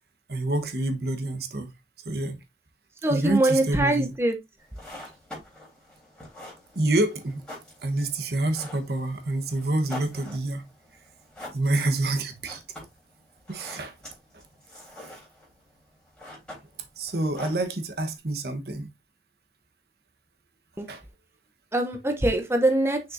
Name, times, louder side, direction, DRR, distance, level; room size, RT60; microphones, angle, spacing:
voice 1, 0.3-1.7 2.0-2.4 3.1-4.2 6.7-7.4 7.8-10.6 11.5-12.6 13.5-13.9 17.0-18.9 20.9-21.0, right 2 dB, 60° right, 1.2 m, -27 dB
voice 2, 3.0-4.4 20.8-20.9 21.7-23.0, right 1 dB, 15° right, 0.8 m, -23 dB
sound 1, 4.6-18.2, left 1 dB, 5° left, 3.7 m, -46 dB
6.3 x 5.9 x 2.6 m
head